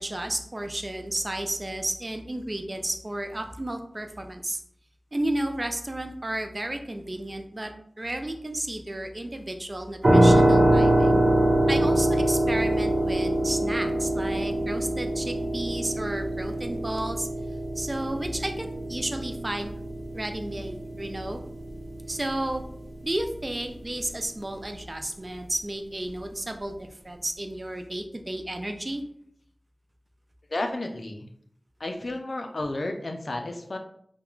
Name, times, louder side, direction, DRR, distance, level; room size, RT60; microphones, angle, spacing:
voice 1, 0.0-4.6 5.1-7.7 8.0-11.2 11.7-17.3 17.8-19.8 20.1-21.4 22.1-22.6 23.0-29.0, right 1 dB, 40° right, 5 dB, 0.3 m, -32 dB
sound 1, 10.0-22.9, right 1 dB, 70° right, 0.8 m, -24 dB
voice 2, 30.5-31.3 31.8-33.8, left 2 dB, 70° left, 4 dB, 0.3 m, -32 dB
3.0 x 2.1 x 2.3 m, 0.66 s
wide cardioid pair, 65°, 0 cm